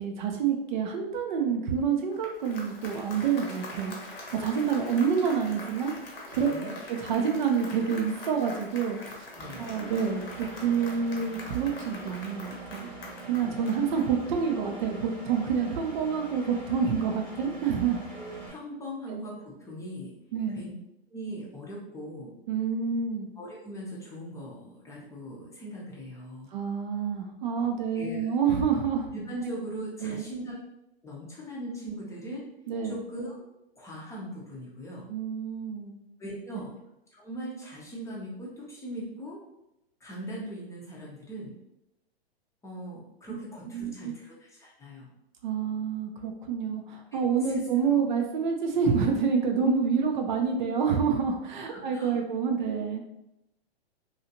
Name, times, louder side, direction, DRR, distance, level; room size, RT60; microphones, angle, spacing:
voice 1, 0.0-4.0 4.3-9.3 9.6-12.9 13.2-18.0 19.1-19.2 20.3-20.6 22.5-23.3 26.5-29.1 30.0-30.3 32.7-33.0 35.1-35.9 43.3-43.4 43.7-44.1 45.4-53.0, right 6 dB, 50° right, 3 dB, 0.5 m, -28 dB
Applause, 2.0-14.5, left 2 dB, 65° left, 0.8 m, -44 dB
voice 2, 6.4-6.7 9.4-9.7 18.1-20.1 20.5-20.7 21.1-22.3 23.4-26.5 27.9-28.3 29.1-30.6 31.0-32.4 32.8-33.4 33.8-35.1 36.2-36.7 37.1-39.4 40.0-41.6 42.6-45.1 47.1-47.5 47.9-48.0 51.7-52.2, right 1 dB, 10° left, -4 dB, 0.6 m, -40 dB
Engine, 9.4-18.5, right 3 dB, 85° right, 1.2 m, -43 dB
2.8 x 2.3 x 2.7 m, 0.87 s
figure-of-eight pair, 110°, 31 cm